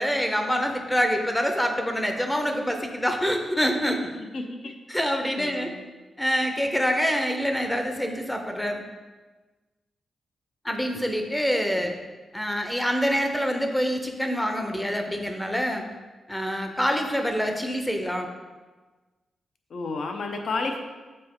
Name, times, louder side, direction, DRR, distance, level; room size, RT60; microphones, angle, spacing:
voice 1, 0.0-4.1 4.9-5.7 6.2-8.8 10.6-12.0 12.3-15.9 16.3-18.3, equal, 5° left, 4 dB, 0.6 m, -26 dB
voice 2, 4.3-4.7 5.3-5.7 11.7-11.9 19.7-20.8, left 3 dB, 60° left, 4 dB, 0.7 m, -31 dB
6.7 x 4.3 x 3.7 m, 1.3 s
wide cardioid pair, 130°, 0 cm